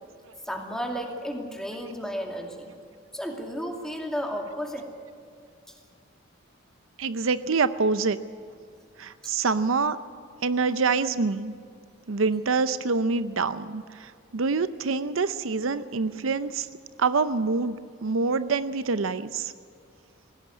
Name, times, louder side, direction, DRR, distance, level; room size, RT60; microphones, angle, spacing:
voice 1, 0.4-2.7 3.1-4.9 5.7-5.8 9.2-9.3, equal, 5° left, 2 dB, 2.4 m, -33 dB
voice 2, 7.0-8.2 9.0-10.0 10.4-11.5 12.1-16.7 17.0-17.7 18.0-19.5, right 4 dB, 70° right, 13 dB, 0.6 m, -26 dB
20.5 x 17.0 x 9.7 m, 2.3 s
head